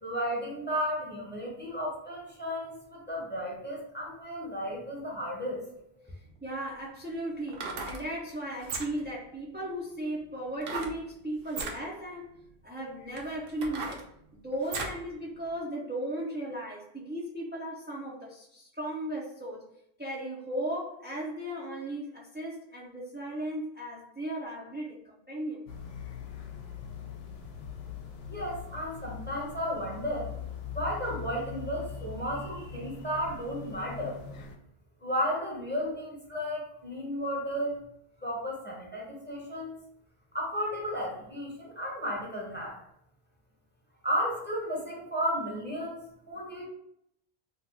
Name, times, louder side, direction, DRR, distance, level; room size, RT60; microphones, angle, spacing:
voice 1, 0.0-5.6 28.3-30.3 30.7-34.2 35.0-37.8 38.2-39.8 40.3-42.7 44.0-46.7, equal, 10° left, -4 dB, 0.7 m, -33 dB
voice 2, 6.1-12.3 12.6-14.0 14.3-19.7 20.0-25.6, right 1 dB, 15° right, -7 dB, 0.4 m, -36 dB
sound 1, 6.3-6.4 7.4-8.0 8.6-9.1 10.6-11.0 11.4-11.8 12.5-12.6 13.1-15.0 15.5-15.6, right 3 dB, 70° right, 0.8 m, -37 dB
sound 2, 25.7-34.6, left 6 dB, 80° left, 0.8 m, -42 dB
2.8 x 2.3 x 3.6 m, 0.75 s
omnidirectional pair, 1.1 m